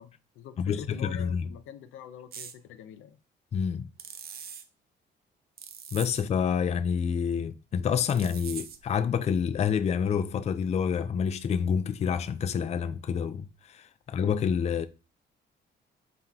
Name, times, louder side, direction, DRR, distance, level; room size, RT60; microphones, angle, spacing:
voice 1, 0.0-3.2, left 9 dB, 85° left, 0.5 m, -45 dB
voice 2, 0.6-1.4 3.5-3.9 5.9-14.9, left 7 dB, 35° left, 0.3 m, -28 dB
sound 1, 2.3-2.6 4.0-4.6 5.6-6.2 8.1-8.9, right 7 dB, 50° right, 0.6 m, -42 dB
3.7 x 2.9 x 3.5 m
cardioid pair, 90°, 20 cm